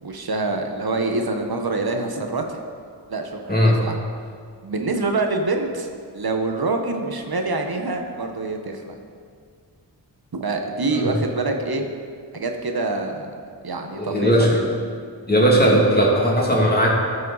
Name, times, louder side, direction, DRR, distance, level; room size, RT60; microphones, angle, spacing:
voice 1, 0.0-2.6 3.1-4.0 4.6-5.9 6.1-8.9 10.4-11.9 12.3-13.4 13.6-14.7, right 3 dB, 55° right, 4 dB, 1.2 m, -25 dB
voice 2, 14.0-14.5 15.3-16.9, equal, 20° left, -4 dB, 2.6 m, -17 dB
14.0 x 5.5 x 4.1 m, 2.1 s
cardioid pair, 40°, 43 cm